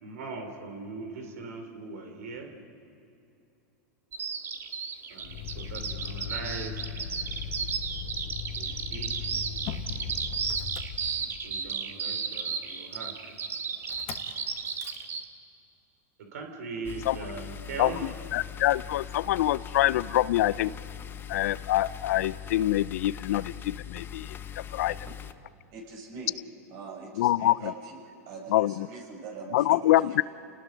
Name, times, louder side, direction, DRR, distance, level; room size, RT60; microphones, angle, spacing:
voice 1, 0.0-2.5 5.1-6.9 8.5-9.3 11.4-13.3 16.2-18.1, right 4 dB, 80° right, 4 dB, 3.3 m, -40 dB
Bird vocalization bird call bird song, 4.1-15.2, right 6 dB, 30° right, 1.6 m, -33 dB
Motor vehicle (road), 5.2-11.6 13.9-14.3 14.7-15.0, left 7 dB, 55° left, 1.6 m, -38 dB
sound 1, 16.8-25.3, left 10 dB, 25° left, 0.9 m, -41 dB
voice 2, 17.8-20.7 21.3-25.0 27.2-27.7 28.5-28.9 29.5-30.2, left 14 dB, 75° left, 18 dB, 0.5 m, -25 dB
voice 3, 25.7-26.4 26.7-28.0 28.3-30.2, right 4 dB, 50° right, 0 dB, 6.7 m, -42 dB
29.5 x 19.5 x 5.3 m, 2.7 s
hypercardioid pair, 115°, 8 cm